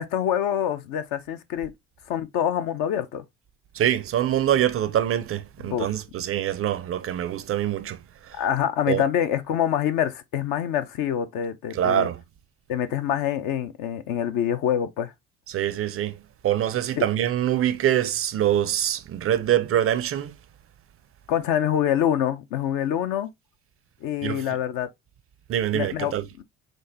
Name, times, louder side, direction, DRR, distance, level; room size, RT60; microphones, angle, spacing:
voice 1, 0.0-1.7 2.1-3.2 5.6-5.9 8.4-12.1 12.7-15.1 17.0-17.1 21.3-23.3 24.0-24.9 25.7-26.4, left 10 dB, 60° left, 0.7 m, -26 dB
voice 2, 3.7-8.0 8.2-8.4 8.9-9.0 11.7-12.2 15.5-16.2 16.4-20.3 24.2-24.5 25.5-26.2, right 11 dB, 40° right, 0.5 m, -24 dB
6.1 x 2.3 x 2.7 m
hypercardioid pair, 60°, 37 cm